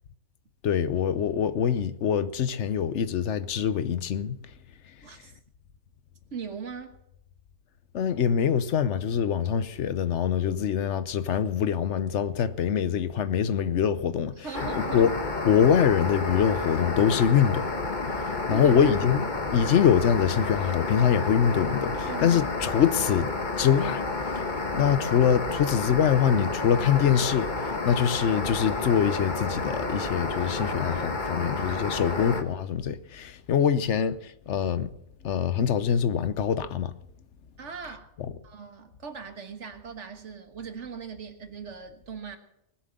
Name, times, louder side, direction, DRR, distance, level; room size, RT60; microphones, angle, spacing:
voice 1, 0.6-4.4 7.9-14.7 14.9-15.1 15.4-19.2 19.5-23.3 23.6-24.1 24.3-24.5 24.7-34.9 35.2-36.9, left 8 dB, 75° left, 1.1 m, -24 dB
voice 2, 5.0-5.3 6.3-6.9 14.4-15.1 18.5-18.8 22.1-22.4 31.4-31.5 37.6-38.1 38.4-42.4, right 6 dB, 80° right, 1.7 m, -39 dB
sound 1, 14.5-32.4, left 3 dB, 40° left, 1.4 m, -30 dB
20.0 x 7.3 x 7.6 m
omnidirectional pair, 1.2 m